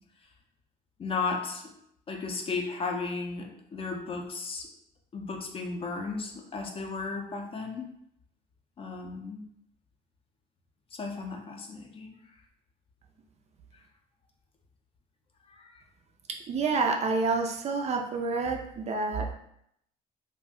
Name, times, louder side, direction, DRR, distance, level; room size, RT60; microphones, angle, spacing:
voice 1, 1.0-1.6 2.1-4.7 5.1-7.9 8.8-9.5 10.9-12.2 15.5-15.7, left 4 dB, 35° left, 3 dB, 0.5 m, -35 dB
voice 2, 16.5-19.3, right 4 dB, 40° right, 3 dB, 0.4 m, -28 dB
2.5 x 2.1 x 3.5 m, 0.74 s
cardioid pair, 110°, 17 cm